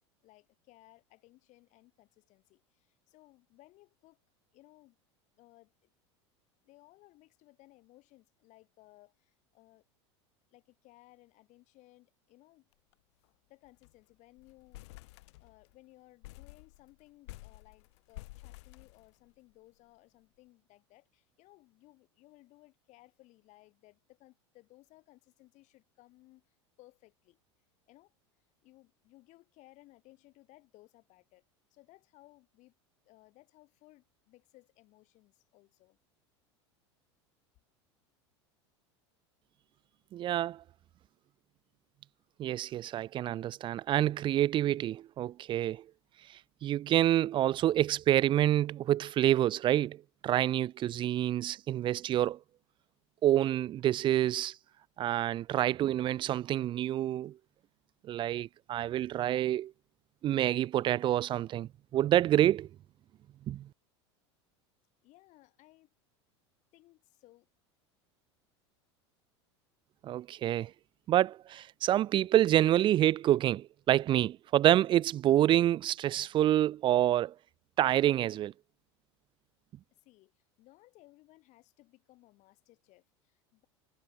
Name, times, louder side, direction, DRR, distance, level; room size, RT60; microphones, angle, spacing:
voice 1, 0.2-4.2 4.5-5.0 5.4-5.9 6.6-9.8 10.5-12.7 13.5-27.4 27.9-28.1 28.6-31.4 31.7-32.7 33.0-36.0 65.0-65.9 66.7-67.5 80.0-83.7, left 19 dB, 55° left, 4.9 m, -61 dB
sound 1, 12.7-12.9 13.2-13.3 13.6-14.0 14.4-15.8 16.2-19.5, left 21 dB, 70° left, 1.5 m, -51 dB
voice 2, 40.1-40.6 42.4-45.8 46.6-52.4 53.2-54.6 55.0-57.4 58.0-59.7 60.2-62.7 63.5-63.7 70.0-70.7 71.1-77.3 77.8-78.5, right 12 dB, 35° right, 0.4 m, -27 dB
hypercardioid pair, 95°, 15 cm